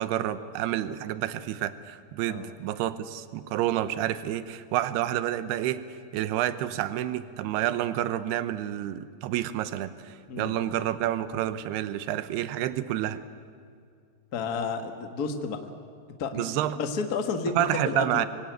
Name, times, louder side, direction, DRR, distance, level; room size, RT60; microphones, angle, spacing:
voice 1, 0.0-5.8 6.1-13.2 16.3-16.8 17.6-18.3, right 12 dB, 80° right, 12 dB, 2.9 m, -29 dB
voice 2, 14.3-15.6 16.2-16.5 16.8-17.6 17.8-18.2, left 5 dB, 60° left, 5 dB, 0.9 m, -31 dB
25.0 x 24.5 x 9.3 m, 2.3 s
omnidirectional pair, 4.7 m